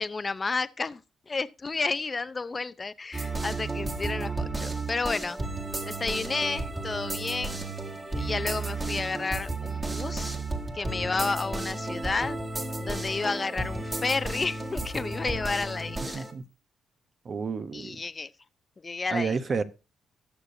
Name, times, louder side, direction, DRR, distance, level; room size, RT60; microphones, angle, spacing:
voice 1, 0.0-5.4 5.9-7.6 8.1-10.4 10.7-12.4 12.8-16.3 17.7-18.3 18.8-19.3, left 4 dB, 30° left, 0.6 m, -31 dB
sound 1, 3.1-16.3, right 2 dB, 20° right, 2.0 m, -33 dB
voice 2, 16.1-16.4 17.2-18.0 19.1-19.6, right 5 dB, 45° right, 0.9 m, -30 dB
18.0 x 6.8 x 2.7 m
cardioid pair, 90°, 0 cm